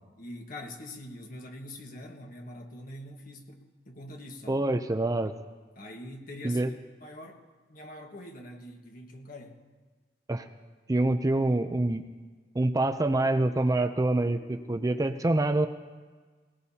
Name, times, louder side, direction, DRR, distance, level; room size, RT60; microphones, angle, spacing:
voice 1, 0.2-4.6 5.7-7.4 7.7-9.6, left 1 dB, 50° left, 3 dB, 1.5 m, -44 dB
voice 2, 4.5-5.3 6.4-6.7 10.3-10.5 10.9-12.0 12.5-15.7, right 2 dB, 20° right, 8 dB, 0.5 m, -26 dB
19.5 x 19.0 x 2.8 m, 1.4 s
head